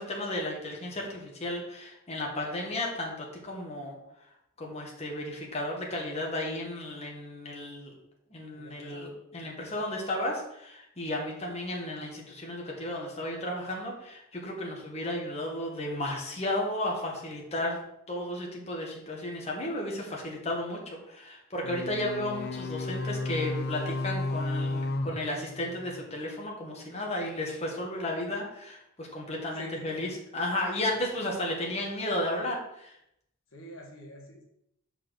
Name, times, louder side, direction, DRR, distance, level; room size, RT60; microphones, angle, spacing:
voice 1, 0.0-4.0 4.6-7.9 8.3-17.8 18.1-33.0, left 1 dB, 30° left, -1 dB, 1.7 m, -34 dB
voice 2, 8.5-9.1 29.5-30.1 30.8-31.0 33.5-34.4, left 1 dB, 75° left, 1 dB, 1.5 m, -46 dB
sound 1, 21.6-26.1, left 2 dB, 50° left, 0.7 m, -33 dB
6.1 x 4.5 x 6.5 m, 0.78 s
head